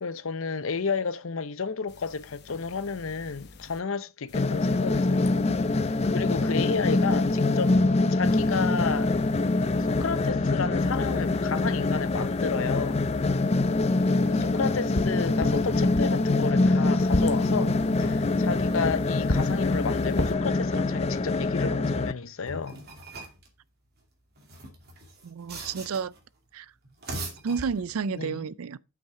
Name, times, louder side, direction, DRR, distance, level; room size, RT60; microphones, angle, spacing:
voice 1, 0.0-5.6 6.1-7.8 8.1-9.2 9.8-13.0 14.2-22.8 28.1-28.4, left 5 dB, 65° left, 0.7 m, -32 dB
sound 1, 1.9-3.8 4.3-7.7 8.2-10.3 10.8-16.5 17.0-20.4, left 2 dB, 50° left, 1.0 m, -38 dB
sound 2, 4.3-22.1, left 2 dB, 30° left, 0.4 m, -24 dB
sound 3, 22.5-23.5 24.4-26.2 26.8-28.2, right 2 dB, 45° right, 2.6 m, -40 dB
voice 2, 25.2-26.1 26.5-26.7 27.4-28.8, right 6 dB, 80° right, 0.4 m, -31 dB
8.2 x 6.0 x 4.8 m
head